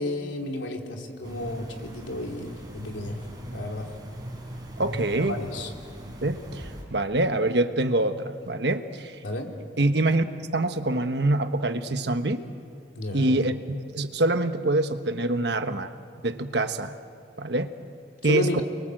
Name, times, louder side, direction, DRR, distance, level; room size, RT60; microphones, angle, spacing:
voice 1, 0.0-3.2 3.5-3.9 5.2-5.7 9.2-9.5 12.9-13.3 18.2-18.6, left 2 dB, 80° left, 2 dB, 3.2 m, -32 dB
sound 1, 1.2-6.8, equal, 20° right, 4.9 m, -40 dB
voice 2, 4.8-5.4 6.2-9.1 9.8-10.2 10.5-12.4 13.1-15.9 16.2-16.9 17.4-17.7 18.2-18.6, right 2 dB, 65° right, 8 dB, 1.3 m, -25 dB
29.5 x 23.5 x 7.8 m, 2.3 s
head